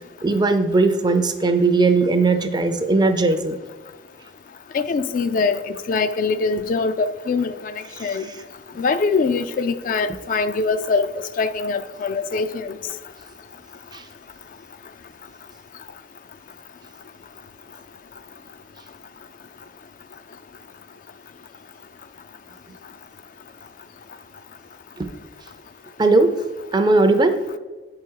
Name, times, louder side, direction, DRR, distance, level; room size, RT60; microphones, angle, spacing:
voice 1, 0.2-3.6 8.0-8.1 13.9-14.0 25.0-25.1 26.0-26.4 26.7-27.4, right 3 dB, 25° right, 0.5 m, -18 dB
voice 2, 4.7-7.7 8.0-8.3 8.8-11.1 11.4-12.8, left 4 dB, 45° left, 0.3 m, -23 dB
7.7 x 4.7 x 4.6 m
head